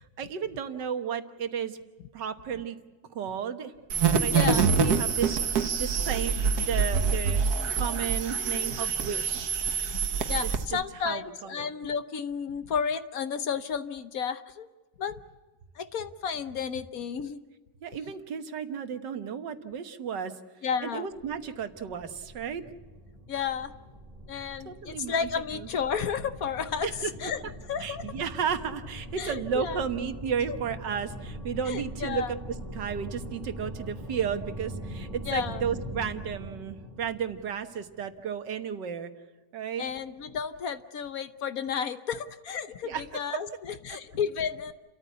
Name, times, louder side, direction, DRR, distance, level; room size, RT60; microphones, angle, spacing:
voice 1, 0.0-1.8 2.1-2.8 3.1-3.7 4.1-9.5 10.4-10.8 11.1-11.7 17.8-20.4 20.8-22.6 24.3-25.7 26.8-27.1 27.8-32.4 32.7-39.1 39.5-39.8 42.8-43.0 43.3-43.4 43.9-44.0, right 7 dB, 85° right, 8 dB, 1.9 m, -33 dB
sound 1, 3.9-10.6, right 6 dB, 65° right, 1.6 m, -26 dB
voice 2, 4.3-4.6 9.9-14.7 15.0-15.2 15.8-17.4 20.6-21.1 23.3-23.7 24.3-26.9 27.2-27.4 27.7-28.2 29.2-29.8 31.7-32.3 35.3-35.6 39.8-44.7, left 7 dB, 60° left, 12 dB, 1.2 m, -32 dB
sound 2, 21.1-38.1, equal, 25° right, 3.2 m, -42 dB
30.0 x 14.0 x 8.2 m, 1.3 s
omnidirectional pair, 1.9 m